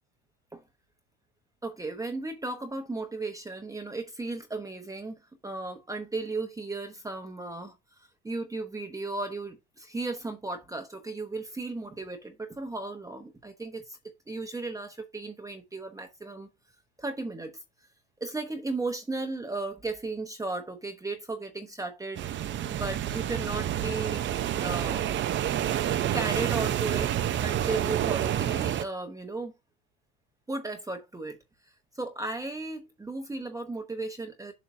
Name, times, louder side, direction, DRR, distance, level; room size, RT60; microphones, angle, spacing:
voice 1, 1.6-5.1 5.4-7.7 8.2-14.0 14.3-16.5 17.0-17.5 18.2-22.3 22.7-24.3 24.6-25.1 26.1-27.1 27.4-29.5 30.5-31.4 31.9-34.5, right 3 dB, 10° right, 1.0 m, -35 dB
sound 1, 22.2-28.8, right 11 dB, 35° right, 0.6 m, -28 dB
7.3 x 6.3 x 2.7 m
supercardioid pair, 110°, 33 cm